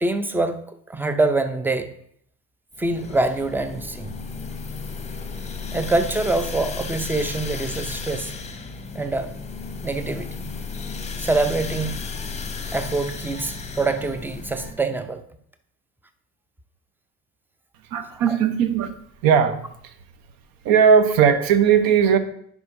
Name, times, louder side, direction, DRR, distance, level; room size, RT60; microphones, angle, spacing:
voice 1, 0.0-2.0 2.8-4.2 5.7-8.3 8.9-9.3 9.8-10.5 11.2-12.0 12.7-15.2 18.1-18.4, right 2 dB, 5° right, 0.5 m, -25 dB
sound 1, 2.8-14.7, left 4 dB, 15° left, 0.9 m, -33 dB
sound 2, 12.1-12.3 12.7-12.9 13.3-13.5 13.9-14.1 14.5-14.7, right 4 dB, 30° right, 2.7 m, -48 dB
voice 2, 17.9-18.9 19.2-19.9 20.6-22.2, right 7 dB, 50° right, 0.9 m, -18 dB
10.5 x 4.9 x 2.6 m
figure-of-eight pair, 65°, 44 cm